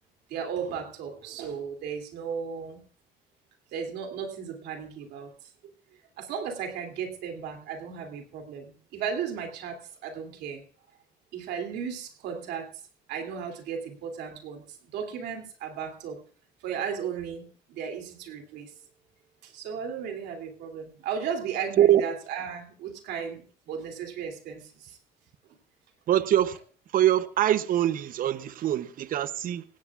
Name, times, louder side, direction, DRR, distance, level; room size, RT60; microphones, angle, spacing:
voice 1, 0.3-2.8 3.7-5.3 6.2-10.6 11.3-12.7 13.1-14.6 14.9-16.2 16.6-18.7 19.4-23.4 23.7-25.0, right 7 dB, 80° right, 2.8 m, -35 dB
voice 2, 26.1-26.6 26.9-29.6, right 12 dB, 55° right, 0.8 m, -23 dB
19.5 x 16.0 x 2.4 m
cardioid pair, 110°, 17 cm